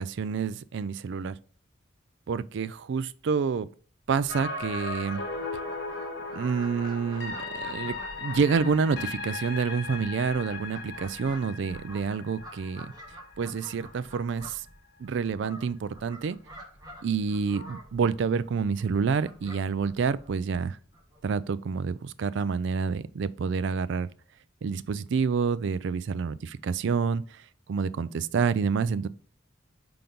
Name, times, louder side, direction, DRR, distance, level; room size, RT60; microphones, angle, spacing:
voice 1, 0.0-1.4 2.3-3.7 4.1-5.2 6.3-12.9 13.4-14.7 15.0-16.4 17.0-20.8 21.2-24.1 24.6-27.4 27.7-29.1, right 5 dB, 60° right, 0.3 m, -28 dB
Fowl, 4.1-21.4, right 1 dB, 20° right, 1.4 m, -49 dB
sound 1, 4.3-14.3 14.7-14.8, left 3 dB, 55° left, 1.0 m, -37 dB
5.7 x 3.8 x 5.2 m
head